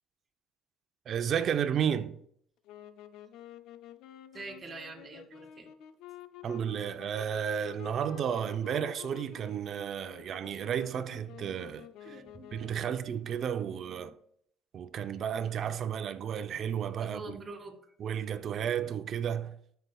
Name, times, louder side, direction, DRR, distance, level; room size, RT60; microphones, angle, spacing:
voice 1, 1.1-2.2 6.4-12.2 12.5-14.1 14.7-17.2 18.0-19.6, right 8 dB, 55° right, 0.6 m, -32 dB
sound 1, 2.6-13.1, left 11 dB, 80° left, 0.5 m, -49 dB
voice 2, 4.3-5.7 12.0-12.5 13.6-14.1 17.0-17.8, right 3 dB, 30° right, 2.2 m, -45 dB
14.0 x 5.8 x 2.3 m
supercardioid pair, 75°, 0 cm